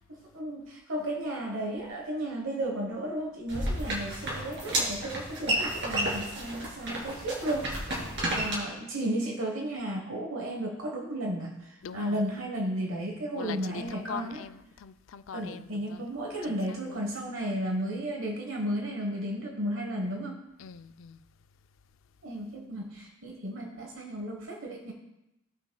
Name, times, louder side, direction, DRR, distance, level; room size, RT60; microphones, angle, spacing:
voice 1, 0.1-7.7 8.3-14.4 15.3-20.4 22.2-24.9, right 1 dB, 90° right, 1.2 m, -34 dB
sound 1, 3.5-8.5, right 1 dB, 60° right, 2.9 m, -32 dB
voice 2, 11.8-12.2 13.4-16.0 16.5-17.0 20.6-21.2, left 7 dB, 85° left, 0.4 m, -42 dB
16.5 x 5.7 x 2.3 m
head